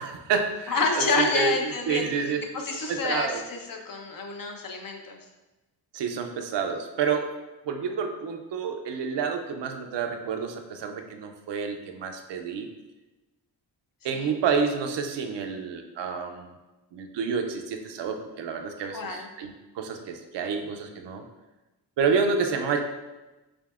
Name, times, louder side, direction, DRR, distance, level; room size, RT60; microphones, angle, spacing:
voice 1, 0.0-1.6 1.9-2.4 2.7-3.4 5.9-7.3 7.7-12.7 14.0-16.5 16.9-21.2 22.0-22.8, right 5 dB, 75° right, 5 dB, 0.5 m, -29 dB
voice 2, 0.7-5.2 14.1-14.3 18.9-19.3, left 3 dB, 50° left, 3 dB, 0.6 m, -29 dB
5.1 x 2.7 x 2.4 m, 1.1 s
wide cardioid pair, 100°, 43 cm